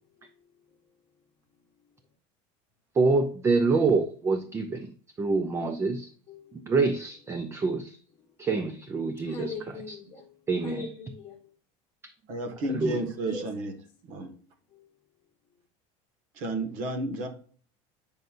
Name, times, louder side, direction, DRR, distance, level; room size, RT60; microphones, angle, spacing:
voice 1, 2.9-4.9 5.2-6.1 6.5-8.0 8.4-9.5 9.9-10.0 10.5-10.9 12.0-12.1 12.6-13.0, right 4 dB, 15° right, 0.5 m, -26 dB
voice 2, 9.3-10.3 10.6-11.4 13.3-13.5, left 4 dB, 25° left, 1.2 m, -39 dB
voice 3, 12.3-13.7 14.1-14.3 16.3-17.3, right 2 dB, 50° right, 1.6 m, -31 dB
9.0 x 5.4 x 2.6 m
cardioid pair, 165°, 15 cm